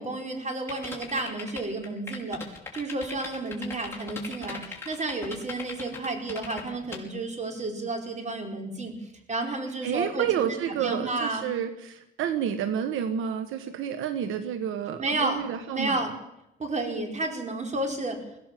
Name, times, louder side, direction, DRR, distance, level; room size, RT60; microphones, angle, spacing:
voice 1, 0.0-2.4 2.7-8.9 9.3-11.5 15.0-15.4 15.7-16.1 16.6-18.2, right 2 dB, 35° right, 4 dB, 4.8 m, -31 dB
sound 1, 0.7-7.0, left 4 dB, 10° left, 5.7 m, -39 dB
voice 2, 9.8-16.1, right 8 dB, 90° right, 9 dB, 1.4 m, -30 dB
21.5 x 16.0 x 7.5 m, 0.87 s
cardioid pair, 90°, 20 cm